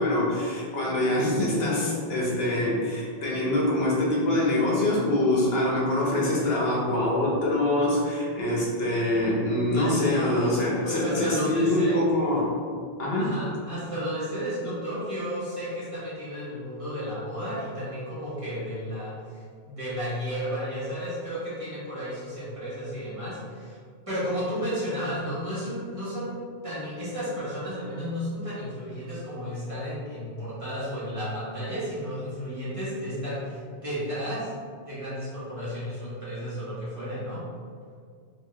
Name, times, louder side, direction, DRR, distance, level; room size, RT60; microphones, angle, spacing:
voice 1, 0.0-12.5 13.0-13.3, left 1 dB, 70° left, -4 dB, 1.1 m, -24 dB
voice 2, 10.8-12.0 13.2-23.8 24.1-34.5 34.8-37.4, equal, 30° right, -10 dB, 1.4 m, -33 dB
4.1 x 2.8 x 3.2 m, 2.1 s
omnidirectional pair, 1.1 m